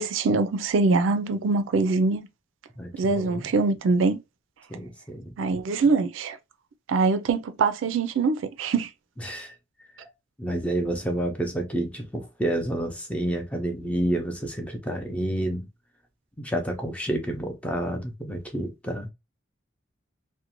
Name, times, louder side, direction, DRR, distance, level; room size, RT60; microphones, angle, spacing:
voice 1, 0.0-2.3 2.9-4.2 5.4-6.4 6.9-8.9, right 3 dB, 75° right, 0.4 m, -23 dB
voice 2, 2.8-3.5 4.7-5.3 9.2-9.5 10.4-15.7 16.4-19.1, right 1 dB, 5° left, 0.5 m, -29 dB
2.5 x 2.1 x 2.8 m
head